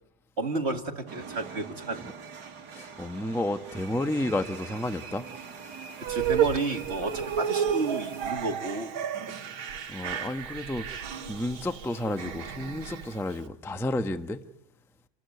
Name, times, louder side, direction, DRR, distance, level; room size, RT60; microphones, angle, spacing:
voice 1, 0.4-2.0 6.1-8.9, right 3 dB, 30° right, 2.2 m, -31 dB
sound 1, 1.1-8.3, right 5 dB, 50° right, 2.3 m, -43 dB
voice 2, 2.7-5.3 9.9-14.4, left 1 dB, ahead, 0.7 m, -31 dB
sound 2, 6.0-13.4, right 8 dB, 70° right, 2.2 m, -32 dB
29.0 x 20.0 x 9.4 m
omnidirectional pair, 2.3 m